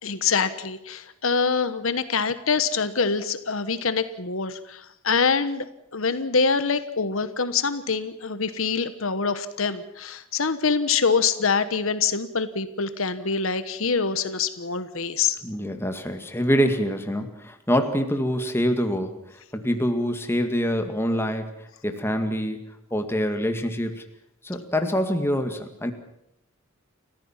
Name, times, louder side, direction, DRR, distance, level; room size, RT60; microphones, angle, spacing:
voice 1, 0.0-5.7 5.9-15.4, left 5 dB, 70° left, 12 dB, 1.2 m, -25 dB
voice 2, 15.4-19.2 19.5-24.0 24.4-25.9, equal, 10° left, 6 dB, 2.0 m, -25 dB
29.5 x 14.5 x 7.4 m, 0.80 s
head